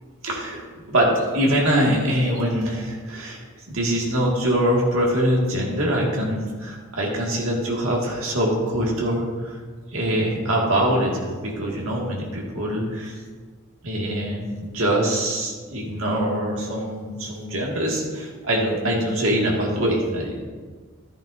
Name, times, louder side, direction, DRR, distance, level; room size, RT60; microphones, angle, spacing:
voice 1, 0.2-3.4 3.7-9.6 9.9-13.1 13.8-20.4, right 1 dB, 75° right, -2 dB, 2.0 m, -23 dB
11.5 x 10.5 x 2.6 m, 1.5 s
head